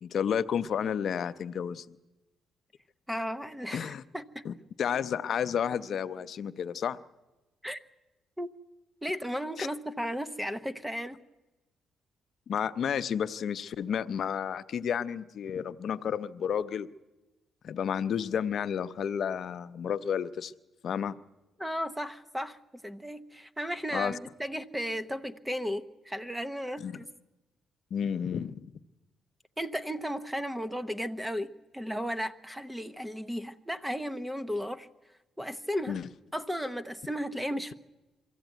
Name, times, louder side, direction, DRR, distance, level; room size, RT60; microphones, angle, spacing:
voice 1, 0.0-2.0 3.7-4.0 4.4-7.0 9.6-9.7 12.5-16.9 17.6-20.5 20.8-21.2 23.9-24.2 26.8-27.0 27.9-28.7 35.9-36.1, left 8 dB, 60° left, 13 dB, 0.7 m, -31 dB
voice 2, 3.1-4.4 7.6-7.8 8.4-8.5 9.0-11.2 21.6-22.6 22.8-27.1 29.6-34.9 35.4-36.0 36.3-37.7, equal, 5° right, 12 dB, 1.0 m, -35 dB
23.5 x 14.5 x 9.2 m, 1.1 s
cardioid pair, 90°, 0 cm